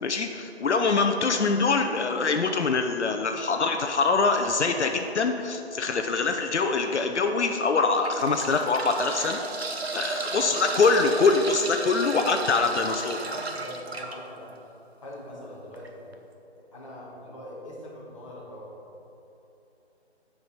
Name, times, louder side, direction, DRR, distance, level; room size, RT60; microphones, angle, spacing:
voice 1, 0.0-9.4 9.9-13.2, left 4 dB, 85° left, 5 dB, 0.7 m, -24 dB
sound 1, 5.8-6.1 6.7-6.8 7.8-14.2 15.7-15.9 16.1-16.2, right 3 dB, 65° right, 1.0 m, -34 dB
voice 2, 12.6-14.5 15.0-16.1 16.7-18.8, left 1 dB, 30° left, -7 dB, 1.8 m, -42 dB
9.7 x 4.8 x 5.6 m, 3.0 s
figure-of-eight pair, 175°, 34 cm